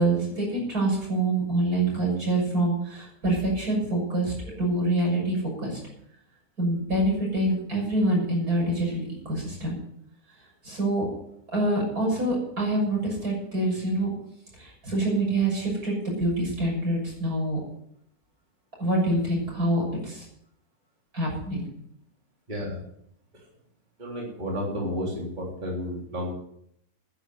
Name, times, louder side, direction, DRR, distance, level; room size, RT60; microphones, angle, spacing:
voice 1, 0.0-5.8 6.6-9.8 10.6-11.1 11.5-14.1 14.5-17.6 18.8-20.3 21.1-21.6, right 1 dB, 75° right, -2 dB, 7.2 m, -26 dB
voice 2, 22.5-22.8 24.0-26.3, equal, 30° right, -3 dB, 3.6 m, -31 dB
11.5 x 10.5 x 7.9 m, 0.72 s
omnidirectional pair, 1.6 m